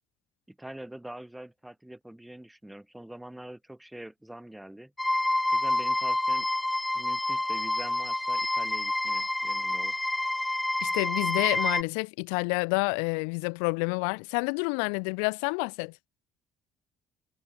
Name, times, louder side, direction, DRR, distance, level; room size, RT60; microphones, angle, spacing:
voice 1, 0.5-4.9 5.5-6.5 6.9-10.0, right 1 dB, 5° right, 1.9 m, -44 dB
sound 1, 5.0-11.8, left 1 dB, 10° left, 0.4 m, -28 dB
voice 2, 10.8-15.9, left 40 dB or more, 80° left, 0.3 m, -29 dB
hypercardioid pair, 70°, 0 cm